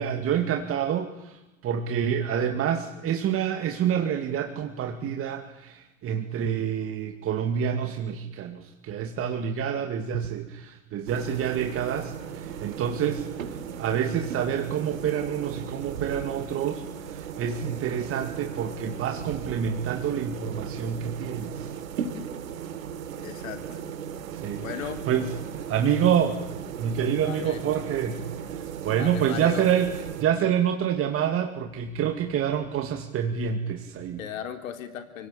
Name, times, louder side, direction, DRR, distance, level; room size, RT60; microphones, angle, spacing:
voice 1, 0.0-21.7 24.3-24.7 25.1-25.3 25.5-26.4 26.8-28.2 28.5-29.9 30.2-34.2, right 8 dB, 35° right, 5 dB, 2.3 m, -27 dB
sound 1, 11.1-30.2, right 8 dB, 75° right, 3.2 m, -37 dB
voice 2, 23.2-23.9 24.6-25.0 27.2-27.6 29.0-29.7 34.2-35.3, left 9 dB, 75° left, 8 dB, 3.6 m, -36 dB
29.5 x 17.5 x 8.8 m, 0.99 s
hypercardioid pair, 110°, 41 cm